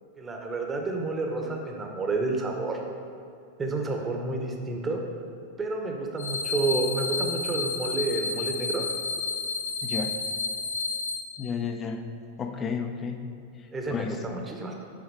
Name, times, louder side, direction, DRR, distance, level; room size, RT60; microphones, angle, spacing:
voice 1, 0.2-2.8 3.6-5.0 5.6-8.9 13.7-14.7, right 3 dB, 15° right, 2 dB, 1.1 m, -30 dB
sound 1, 6.2-11.2, left 4 dB, 80° left, 1.4 m, -30 dB
voice 2, 11.4-12.0 12.4-13.2 13.9-14.2, left 6 dB, 25° left, 6 dB, 0.7 m, -31 dB
8.7 x 5.6 x 4.8 m, 2.4 s
figure-of-eight pair, 90°, 0 cm